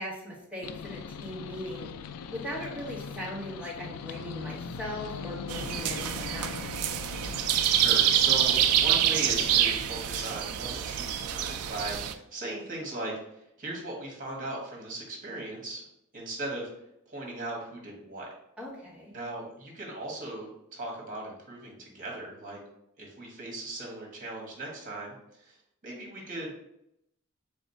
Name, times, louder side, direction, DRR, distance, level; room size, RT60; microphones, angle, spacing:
voice 1, 0.0-1.9 2.3-6.5 18.6-19.1, equal, 5° right, -5 dB, 1.3 m, -39 dB
sound 1, 0.6-9.9, left 6 dB, 80° left, 0.3 m, -41 dB
sound 2, 5.5-12.1, right 10 dB, 90° right, 0.4 m, -26 dB
voice 2, 7.6-15.8 16.1-16.7 17.1-18.3 19.1-22.6 23.0-25.6 25.8-26.5, right 2 dB, 40° right, -1 dB, 1.4 m, -38 dB
3.5 x 3.2 x 4.1 m, 0.80 s
head